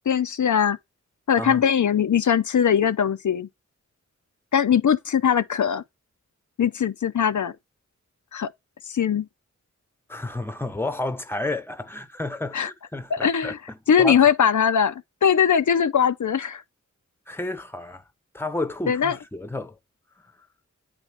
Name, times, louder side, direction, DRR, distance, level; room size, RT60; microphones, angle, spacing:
voice 1, 0.1-0.8 1.3-3.5 4.5-5.8 6.6-7.5 8.3-8.5 8.9-9.3 12.5-12.7 13.1-13.6 13.9-16.6 18.9-19.2, left 8 dB, 75° left, 0.5 m, -21 dB
voice 2, 10.1-13.5 14.0-14.2 17.3-18.0 18.3-19.8, left 2 dB, 5° left, 0.8 m, -31 dB
8.9 x 4.3 x 3.4 m
wide cardioid pair, 65°, 30 cm